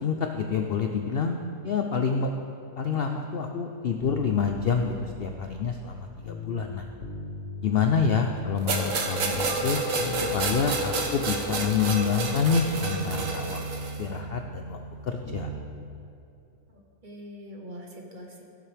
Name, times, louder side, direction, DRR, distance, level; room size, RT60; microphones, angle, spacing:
voice 1, 0.0-2.3 2.8-6.9 7.6-9.8 10.3-14.8 15.0-15.5, left 6 dB, 80° left, 4 dB, 0.5 m, -27 dB
sound 1, 4.0-6.7 7.0-9.1 9.3-12.7 13.0-15.6 15.9-16.0, left 1 dB, 50° left, 1.2 m, -39 dB
sound 2, 8.7-14.0, right 3 dB, 60° right, 1.3 m, -29 dB
voice 2, 16.7-18.4, equal, 35° right, 0 dB, 1.0 m, -43 dB
16.5 x 7.3 x 3.4 m, 2.7 s
omnidirectional pair, 1.7 m